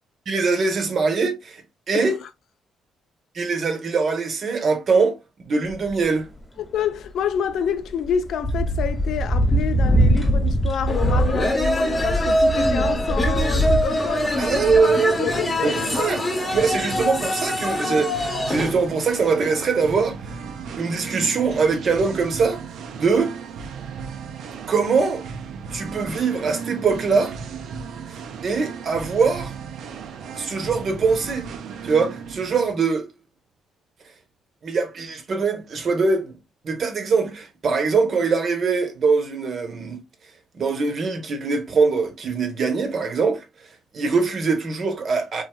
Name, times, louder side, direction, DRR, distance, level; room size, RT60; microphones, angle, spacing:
voice 1, 0.3-2.2 3.3-5.1 5.5-6.3 14.4-15.2 15.6-16.2 16.5-20.2 20.8-22.6 22.9-23.3 24.7-25.2 25.7-27.4 28.1-29.5 30.4-31.5 31.8-33.1 34.6-36.3 36.6-40.0 40.5-43.4 43.9-45.4, right 4 dB, 55° right, 0.8 m, -22 dB
sound 1, 5.7-5.9 7.9-14.8, equal, 5° left, 1.1 m, -22 dB
voice 2, 6.7-14.7 15.2-16.1, left 8 dB, 70° left, 0.3 m, -28 dB
sound 2, 10.9-18.7, left 1 dB, 25° left, 0.8 m, -24 dB
Singing, 13.6-32.7, right 6 dB, 75° right, 0.4 m, -36 dB
3.1 x 2.5 x 2.2 m
cardioid pair, 90°, 0 cm